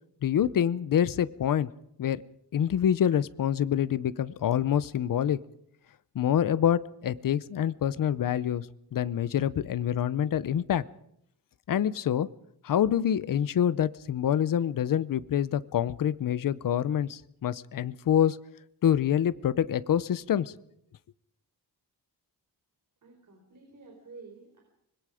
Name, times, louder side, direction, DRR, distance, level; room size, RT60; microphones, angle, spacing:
voice 1, 0.2-1.7 2.0-2.2 2.5-5.4 6.1-8.7 8.9-10.8 11.7-12.3 12.6-18.4 18.8-20.5, left 9 dB, 55° left, 16 dB, 0.7 m, -26 dB
voice 2, 23.0-24.6, right 4 dB, 45° right, 2 dB, 4.5 m, -50 dB
25.0 x 21.0 x 5.0 m, 0.74 s
wide cardioid pair, 160°, 41 cm